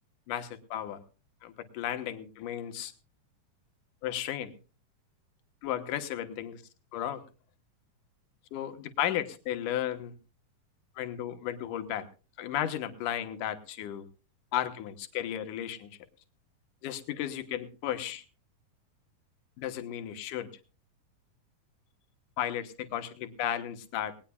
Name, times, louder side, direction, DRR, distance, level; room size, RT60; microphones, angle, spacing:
voice 1, 0.3-1.0 1.4-2.9 4.0-4.5 5.6-6.6 6.9-7.2 8.5-10.1 11.0-12.1 12.4-14.1 14.5-15.9 16.8-18.2 19.6-20.5 22.4-24.1, left 11 dB, 70° left, 8 dB, 2.6 m, -34 dB
19.5 x 19.0 x 2.3 m, 0.35 s
omnidirectional pair, 3.9 m